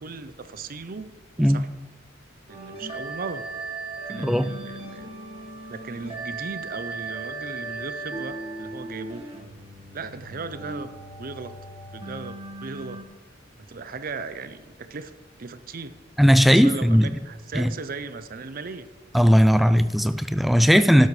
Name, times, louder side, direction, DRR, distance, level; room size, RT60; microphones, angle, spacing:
voice 1, 0.0-1.1 1.4-1.7 2.5-3.5 4.1-5.1 5.7-9.3 9.9-10.9 11.2-11.6 11.9-13.0 13.7-15.1 15.4-15.9 16.5-18.9, right 4 dB, 50° right, 12 dB, 0.6 m, -37 dB
sound 1, 2.5-13.0, right 3 dB, 30° right, 1.6 m, -37 dB
voice 2, 4.2-4.5 16.2-17.1 17.5-17.7 19.1-21.1, equal, ahead, 11 dB, 0.3 m, -17 dB
12.0 x 12.0 x 3.2 m, 1.4 s
head